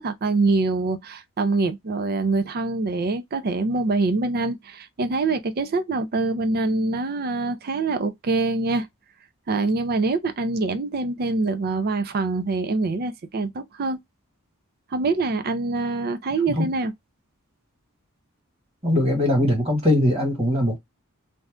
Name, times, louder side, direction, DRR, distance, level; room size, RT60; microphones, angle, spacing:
voice 1, 0.0-8.9 9.5-14.0 14.9-16.9, right 3 dB, 45° right, 0.5 m, -24 dB
voice 2, 18.8-20.8, left 1 dB, 30° right, 1.6 m, -21 dB
2.6 x 2.2 x 3.5 m
head